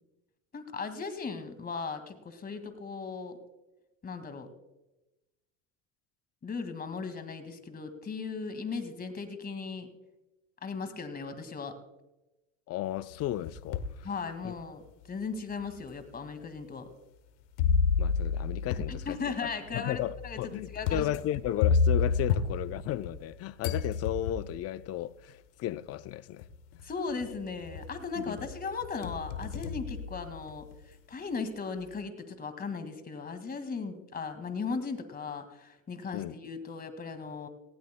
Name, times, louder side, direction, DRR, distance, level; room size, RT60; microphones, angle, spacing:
voice 1, 0.5-3.4 4.0-4.5 6.4-9.9 10.6-11.8 14.0-14.8 15.1-16.9 18.9-20.4 20.7-21.1 26.8-30.7 31.1-37.5, left 4 dB, 25° left, 2.0 m, -37 dB
voice 2, 12.7-14.1 14.4-14.6 18.0-19.2 19.7-26.5 28.2-28.5 36.1-36.3, left 13 dB, 45° left, 0.6 m, -34 dB
sound 1, 13.1-14.0 14.6-14.7 15.6-15.7 17.6-23.3 23.6-24.6 25.8-25.9 26.4-26.8 27.2-28.0 28.4-30.7, left 5 dB, 75° left, 1.2 m, -30 dB
18.5 x 16.5 x 2.2 m
supercardioid pair, 95°, 35 cm